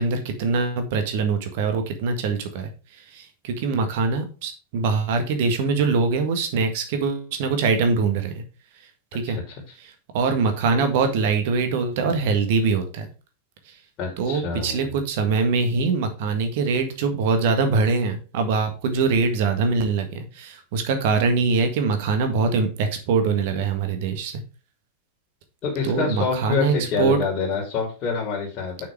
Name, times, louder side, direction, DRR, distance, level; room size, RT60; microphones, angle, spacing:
voice 1, 0.0-2.7 3.1-8.4 9.1-9.4 10.1-13.1 14.2-24.3 25.8-27.2, right 4 dB, 50° right, 7 dB, 1.7 m, -23 dB
voice 2, 9.3-9.6 14.0-14.9 25.6-28.8, left 5 dB, 35° left, -3 dB, 2.8 m, -26 dB
6.9 x 6.0 x 4.8 m, 0.33 s
figure-of-eight pair, 90°, 0 cm